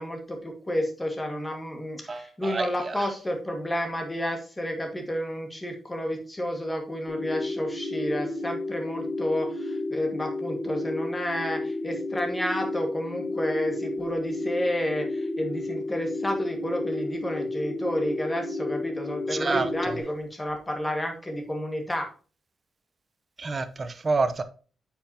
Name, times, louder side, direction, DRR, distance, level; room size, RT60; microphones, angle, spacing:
voice 1, 0.0-22.1, equal, 15° left, 1.9 m, -31 dB
voice 2, 2.1-2.6 19.3-19.9 23.4-24.4, right 3 dB, 30° right, 0.8 m, -28 dB
sound 1, 7.1-20.0, left 2 dB, 60° left, 2.1 m, -32 dB
8.9 x 5.7 x 2.9 m
cardioid pair, 125°, 0 cm